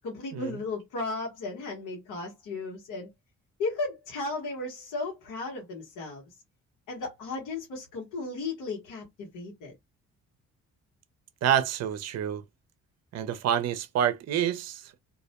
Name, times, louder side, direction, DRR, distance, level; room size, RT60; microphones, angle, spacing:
voice 1, 0.0-3.1 3.6-6.3 6.9-9.7, left 3 dB, 85° left, 1.1 m, -35 dB
voice 2, 11.4-12.4 13.1-15.0, right 9 dB, 60° right, 0.5 m, -27 dB
2.4 x 2.1 x 2.8 m
cardioid pair, 90°, 30 cm